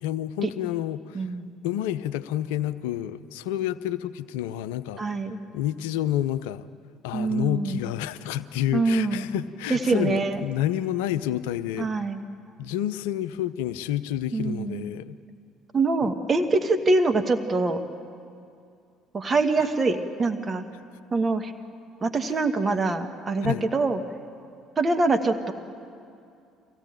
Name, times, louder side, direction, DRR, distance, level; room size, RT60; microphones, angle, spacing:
voice 1, 0.0-1.3 1.6-5.0 5.5-6.7 7.0-11.9 12.6-15.2 16.0-16.1 23.4-23.6, left 12 dB, 70° left, 14 dB, 0.6 m, -29 dB
voice 2, 1.1-1.5 5.0-5.4 7.1-7.8 8.7-9.2 9.7-10.4 11.8-12.2 14.3-14.8 15.7-17.8 19.1-20.6 21.1-21.5 22.0-24.0 24.8-25.5, right 3 dB, 30° right, 8 dB, 1.4 m, -24 dB
24.5 x 16.5 x 9.0 m, 2.5 s
figure-of-eight pair, 55°, 0 cm